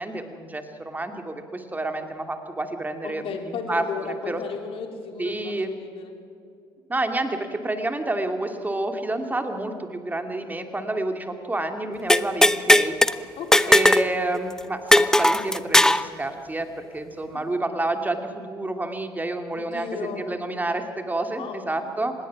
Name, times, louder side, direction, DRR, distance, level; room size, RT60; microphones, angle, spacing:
voice 1, 0.0-4.4 5.2-5.7 6.9-13.0 13.7-22.1, right 2 dB, 15° right, 6 dB, 2.6 m, -29 dB
voice 2, 3.0-6.2 13.4-13.9 19.6-20.2 21.3-21.9, left 6 dB, 55° left, 4 dB, 3.2 m, -35 dB
sound 1, 12.1-13.1 13.5-14.1 14.3-14.4 14.9-16.0, left 1 dB, 5° left, 0.8 m, -17 dB
25.5 x 20.0 x 6.0 m, 2.5 s
figure-of-eight pair, 55°, 12 cm